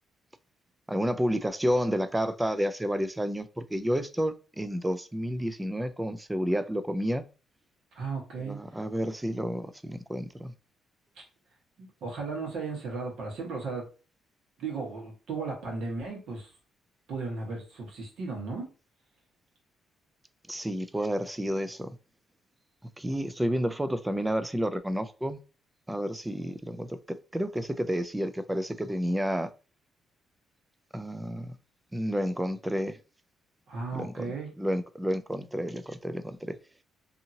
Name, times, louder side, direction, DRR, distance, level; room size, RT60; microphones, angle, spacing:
voice 1, 0.9-7.3 8.4-10.5 20.5-22.0 23.0-25.4 25.9-29.5 30.9-31.5 31.9-33.0 33.9-34.3 34.6-36.6, equal, 10° right, 0.3 m, -30 dB
voice 2, 7.9-8.6 11.8-13.9 14.6-16.5 17.1-18.7 33.7-34.5, right 4 dB, 75° right, 1.2 m, -35 dB
2.7 x 2.6 x 2.7 m
cardioid pair, 90°, 0 cm